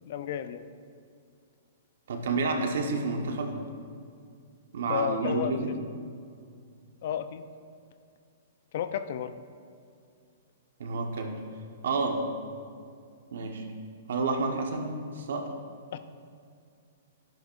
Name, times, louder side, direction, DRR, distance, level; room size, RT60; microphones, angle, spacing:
voice 1, 0.1-0.7 4.9-5.6 7.0-7.4 8.7-9.4 15.9-16.0, left 9 dB, 60° left, 11 dB, 0.5 m, -32 dB
voice 2, 2.1-3.6 4.7-5.7 10.8-11.3 11.8-12.2 13.3-13.6 14.1-15.5, right 3 dB, 75° right, 3 dB, 1.3 m, -29 dB
12.0 x 10.5 x 2.6 m, 2.3 s
hypercardioid pair, 130°, 0 cm